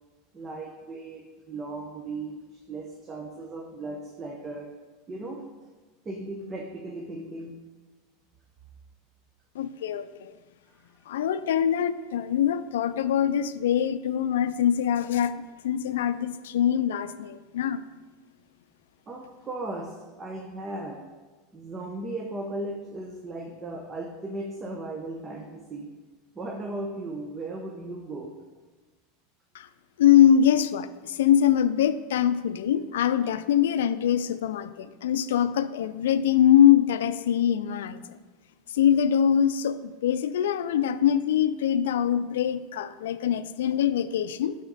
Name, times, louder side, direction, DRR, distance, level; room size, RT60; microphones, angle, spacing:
voice 1, 0.3-4.7 5.1-5.4 6.0-7.5 10.7-10.9 19.1-21.0 21.5-25.9 26.3-28.3, right 2 dB, 25° right, 1 dB, 0.8 m, -37 dB
voice 2, 9.6-10.3 11.1-15.4 15.6-17.8 29.5-29.7 30.0-38.2 38.7-44.6, left 9 dB, 85° left, 13 dB, 0.4 m, -23 dB
11.0 x 4.2 x 4.0 m, 1.3 s
supercardioid pair, 115°, 0 cm